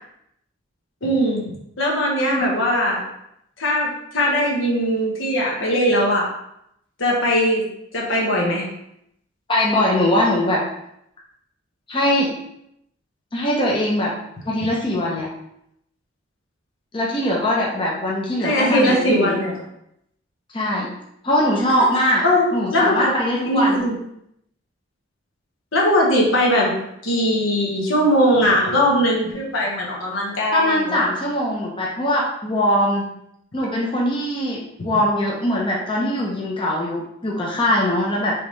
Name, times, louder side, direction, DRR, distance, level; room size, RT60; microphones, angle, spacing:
voice 1, 1.0-1.4 1.8-3.0 3.6-6.3 7.0-7.6 7.9-8.7 18.4-19.6 22.2-22.5 22.7-23.1 23.4-24.0 25.7-26.8 27.0-31.0, equal, 70° left, -2 dB, 1.2 m, -20 dB
voice 2, 9.5-10.6 11.9-12.3 13.3-14.1 14.5-15.3 16.9-19.4 20.5-20.9 21.2-22.2 22.5-23.8 30.5-33.0 33.5-34.6 34.8-38.3, left 1 dB, 25° left, -4 dB, 0.7 m, -21 dB
4.7 x 3.5 x 3.2 m, 0.78 s
head